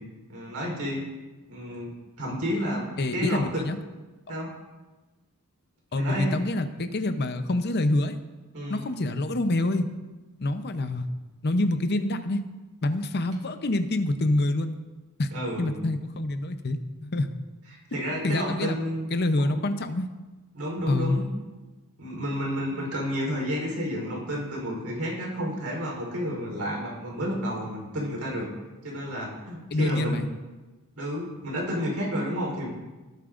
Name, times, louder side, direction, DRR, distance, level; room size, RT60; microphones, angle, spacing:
voice 1, 0.3-1.0 1.5-3.6 4.3-4.5 5.9-6.4 8.5-8.8 15.3-15.8 17.9-19.1 19.4-19.6 20.5-21.3 22.0-28.5 28.8-30.2 31.0-32.7, equal, 75° right, -2 dB, 3.9 m, -31 dB
voice 2, 3.0-3.8 5.9-8.2 8.7-9.9 10.4-11.1 11.4-12.4 12.8-14.8 15.2-15.3 15.6-17.3 18.2-18.8 19.1-20.1 20.9-21.2 22.7-22.9 29.7-30.3, left 2 dB, 45° left, 8 dB, 0.7 m, -26 dB
18.5 x 8.7 x 2.6 m, 1.2 s
head